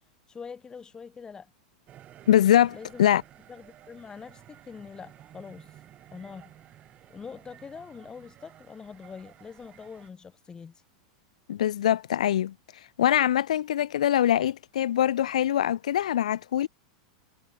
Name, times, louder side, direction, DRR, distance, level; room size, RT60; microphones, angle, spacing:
voice 1, 0.3-1.5 2.7-3.0 3.5-5.7 6.1-6.5 7.1-10.8, left 6 dB, 20° left, 2.6 m, -44 dB
sound 1, 1.9-10.1, right 12 dB, 35° right, 3.5 m, -53 dB
voice 2, 2.3-3.2 11.5-16.7, left 11 dB, 80° left, 0.4 m, -23 dB
hypercardioid pair, 100°, 4 cm